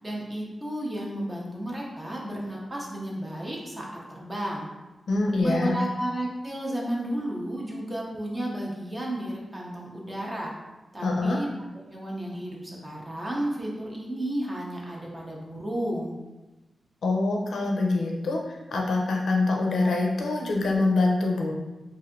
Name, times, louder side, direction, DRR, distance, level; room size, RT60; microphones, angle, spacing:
voice 1, 0.0-4.7 5.4-10.5 10.9-11.5 11.9-16.1, right 1 dB, 15° right, -3 dB, 0.5 m, -32 dB
voice 2, 5.1-5.8 11.0-11.4 17.0-21.5, left 2 dB, 85° left, -1 dB, 0.5 m, -25 dB
3.2 x 2.6 x 2.5 m, 1.1 s
wide cardioid pair, 175°, 0 cm